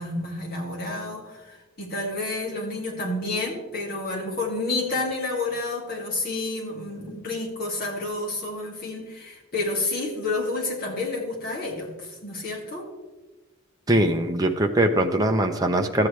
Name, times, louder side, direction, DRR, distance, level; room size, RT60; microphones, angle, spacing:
voice 1, 0.0-12.9, left 2 dB, 45° left, -2 dB, 2.2 m, -30 dB
voice 2, 13.9-16.1, right 1 dB, 20° right, 4 dB, 0.6 m, -21 dB
13.5 x 8.5 x 3.2 m, 1.2 s
head